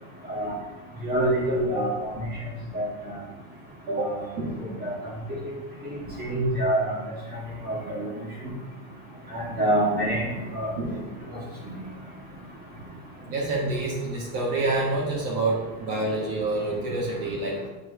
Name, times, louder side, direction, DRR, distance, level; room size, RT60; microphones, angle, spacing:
voice 1, 1.0-2.1 2.7-2.9 3.9-4.1 4.8-4.9 5.3-5.5 5.8-6.9 7.6-8.1 9.3-10.2 10.5-10.7 11.7-11.8, right 1 dB, 20° right, -5 dB, 1.8 m, -26 dB
voice 2, 3.9-4.6 10.8-11.0 13.3-17.6, right 2 dB, 45° right, -3 dB, 1.4 m, -27 dB
8.6 x 3.3 x 3.4 m, 1.1 s
cardioid pair, 175°, 41 cm